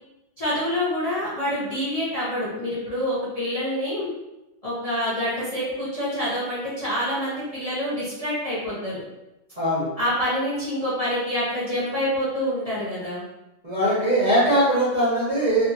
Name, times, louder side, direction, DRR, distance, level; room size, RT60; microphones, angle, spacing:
voice 1, 0.4-4.1 4.6-9.0 10.0-13.2, equal, 50° left, -9 dB, 0.4 m, -27 dB
voice 2, 9.6-9.9 13.6-15.7, right 1 dB, 45° right, -10 dB, 0.5 m, -21 dB
3.4 x 2.6 x 2.8 m, 0.96 s
omnidirectional pair, 2.1 m